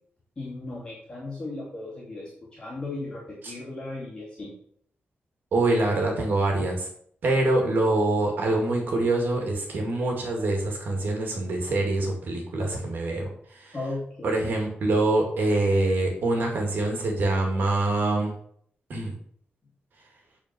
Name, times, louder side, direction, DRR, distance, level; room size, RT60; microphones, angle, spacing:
voice 1, 0.4-4.5 13.7-14.5, left 2 dB, 25° left, -7 dB, 2.5 m, -36 dB
voice 2, 5.5-6.9 7.2-13.7 14.2-18.3 18.9-19.1, right 2 dB, 65° right, 1 dB, 2.1 m, -25 dB
8.9 x 4.4 x 5.9 m, 0.63 s
wide cardioid pair, 180°, 4 cm